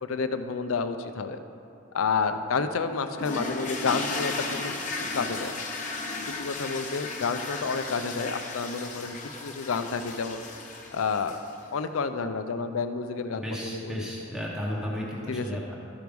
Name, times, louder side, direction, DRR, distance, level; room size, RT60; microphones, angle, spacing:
voice 1, 0.0-1.4 1.9-4.7 5.1-5.5 6.4-10.4 10.9-11.4 11.7-14.1 15.3-15.6, left 5 dB, 80° left, 9 dB, 0.5 m, -30 dB
sound 1, 3.2-11.6, left 3 dB, 35° left, 1.0 m, -35 dB
voice 2, 13.3-15.7, equal, ahead, -5 dB, 0.9 m, -33 dB
13.0 x 4.7 x 5.2 m, 2.9 s
head